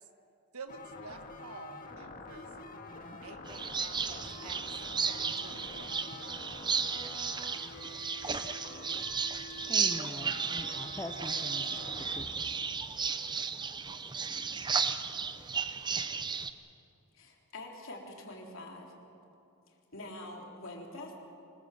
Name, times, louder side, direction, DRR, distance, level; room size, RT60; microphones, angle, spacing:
voice 1, 0.5-2.5 3.2-4.6 5.0-6.0, right 4 dB, 80° right, 1.4 m, -49 dB
sound 1, 0.7-12.2, left 2 dB, 40° left, 1.9 m, -47 dB
sound 2, 3.4-16.5, right 5 dB, 20° right, 0.7 m, -34 dB
voice 2, 9.7-11.8 12.1-12.5, left 1 dB, 10° left, 0.7 m, -43 dB
voice 3, 17.1-18.9 19.7-21.2, left 2 dB, 60° left, 3.6 m, -45 dB
25.0 x 20.0 x 7.8 m
head